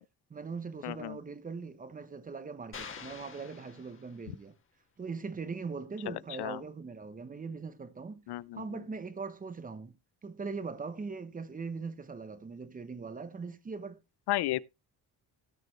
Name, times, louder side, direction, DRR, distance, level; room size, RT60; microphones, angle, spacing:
voice 1, 0.3-4.5 5.0-8.2 8.5-9.9 10.2-14.0, right 4 dB, 20° right, 0.9 m, -40 dB
voice 2, 0.8-1.2 6.4-6.6 8.3-8.6 14.3-14.6, left 16 dB, 85° left, 0.6 m, -32 dB
sound 1, 2.7-4.5, left 6 dB, 30° left, 1.8 m, -47 dB
17.5 x 6.6 x 3.1 m
cardioid pair, 180°, 38 cm